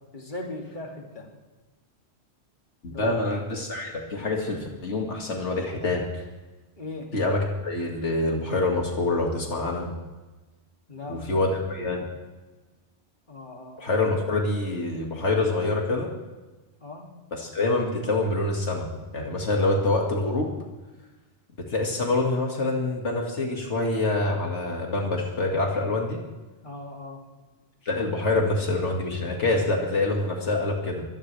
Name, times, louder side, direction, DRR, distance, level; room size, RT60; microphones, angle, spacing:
voice 1, 0.1-1.3 2.9-3.1 6.8-7.1 10.9-11.7 13.3-13.8 16.8-17.1 26.6-27.2, left 2 dB, 45° left, -1 dB, 2.8 m, -38 dB
voice 2, 2.8-6.0 7.1-9.9 11.1-12.0 13.8-16.1 17.3-18.9 19.1-20.5 21.7-26.2 27.9-31.0, left 2 dB, 80° left, 0 dB, 2.4 m, -26 dB
23.0 x 17.5 x 3.4 m, 1.2 s
omnidirectional pair, 1.2 m